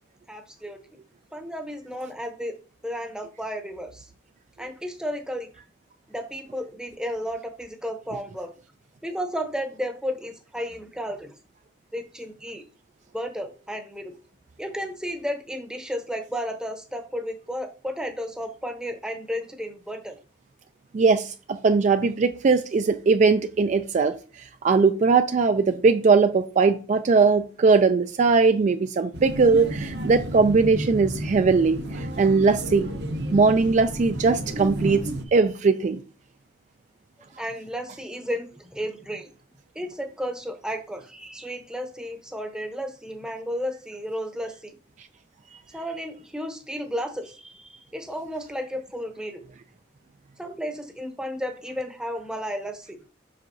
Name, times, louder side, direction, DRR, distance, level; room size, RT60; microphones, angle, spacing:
voice 1, 0.3-0.8 1.3-2.6 2.8-4.1 4.6-5.5 6.1-8.5 9.0-11.3 11.9-12.6 13.1-14.1 14.6-20.2 37.4-39.3 39.7-44.8 45.7-49.4 50.4-53.0, equal, 5° right, 0.8 m, -33 dB
voice 2, 20.9-24.1 24.6-32.9 33.3-35.0 35.3-36.0, right 4 dB, 40° right, 0.3 m, -20 dB
In aquarium, 29.1-35.2, right 1 dB, 60° right, 0.9 m, -32 dB
7.4 x 5.7 x 2.7 m
head